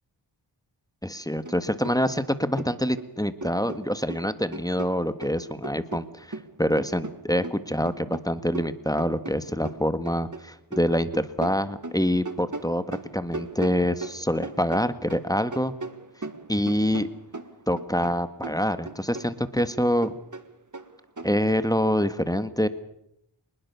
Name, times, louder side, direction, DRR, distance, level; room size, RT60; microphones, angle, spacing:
voice 1, 1.0-15.7 16.5-17.1 17.7-20.1 21.2-22.7, equal, 10° left, 11 dB, 1.6 m, -26 dB
sound 1, 1.4-1.6 1.8-3.1 3.4-5.3 5.6-10.4 10.7-15.3 15.5-18.2 18.4-21.3, right 3 dB, 40° right, 1.8 m, -39 dB
25.0 x 20.5 x 7.0 m, 0.76 s
wide cardioid pair, 40°, 48 cm